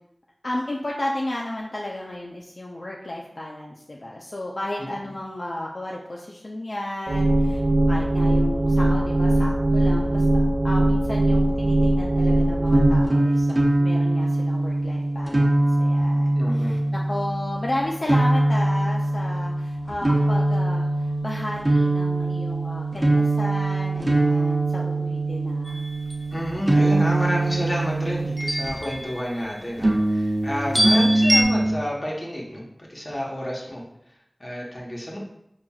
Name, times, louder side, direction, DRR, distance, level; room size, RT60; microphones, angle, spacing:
voice 1, 0.4-7.6 7.9-16.3 16.7-20.9 21.2-25.8, left 1 dB, 70° left, -3 dB, 0.4 m, -33 dB
voice 2, 4.8-5.1 16.3-16.9 26.3-33.8 34.4-35.2, equal, 40° left, -3 dB, 1.0 m, -30 dB
sound 1, 7.1-13.1, right 1 dB, 80° right, 0.4 m, -20 dB
sound 2, 12.7-29.0 29.8-31.8, right 2 dB, 55° right, 0.7 m, -22 dB
sound 3, 25.7-26.2 28.4-29.8 30.8-31.4, equal, 15° left, 0.6 m, -25 dB
5.5 x 2.5 x 2.3 m, 0.80 s
wide cardioid pair, 55°, 0 cm